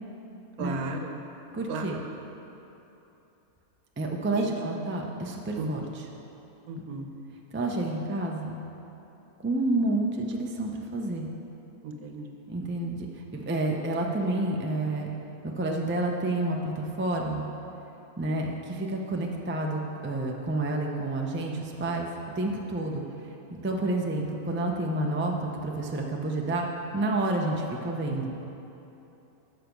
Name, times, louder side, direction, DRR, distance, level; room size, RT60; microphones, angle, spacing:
voice 1, 0.6-1.2 1.7-2.0 4.3-4.5 5.6-5.7 6.7-7.1 11.8-12.3 23.7-23.8, right 3 dB, 80° right, 4 dB, 1.3 m, -34 dB
voice 2, 1.5-2.0 4.0-6.1 6.8-6.9 7.5-8.6 9.4-11.3 12.5-15.1 15.4-17.5 18.2-22.1 22.3-23.0 23.6-26.7 26.9-28.4, right 2 dB, 15° right, 0 dB, 0.4 m, -29 dB
11.5 x 6.6 x 5.3 m, 3.0 s
omnidirectional pair, 1.6 m